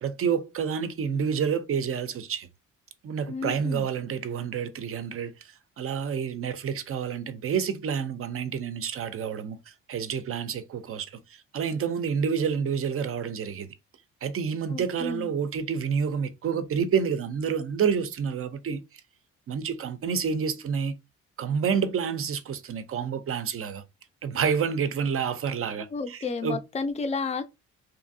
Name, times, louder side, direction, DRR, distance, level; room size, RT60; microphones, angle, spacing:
voice 1, 0.0-2.5 3.0-13.7 14.2-18.8 19.5-20.9 21.4-23.8 24.2-26.6, right 6 dB, 45° right, 0.5 m, -29 dB
voice 2, 3.3-3.9 14.7-15.3 25.9-27.4, left 4 dB, 20° left, 0.5 m, -31 dB
2.8 x 2.5 x 2.6 m
cardioid pair, 75°, 32 cm